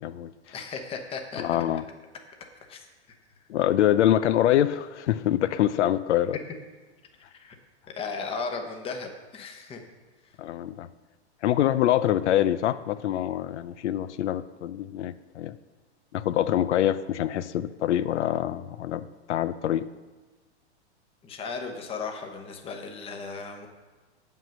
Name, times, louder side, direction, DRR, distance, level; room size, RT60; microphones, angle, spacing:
voice 1, 0.0-0.3 1.4-1.8 3.5-6.4 10.4-10.9 11.4-15.5 16.1-19.9, left 12 dB, 80° left, 13 dB, 0.5 m, -25 dB
voice 2, 0.5-1.6 2.7-2.8 7.2-7.6 7.9-9.8 10.2-10.4 21.2-23.7, left 4 dB, 15° left, 4 dB, 0.9 m, -36 dB
7.7 x 5.5 x 7.4 m, 1.3 s
hypercardioid pair, 145°, 34 cm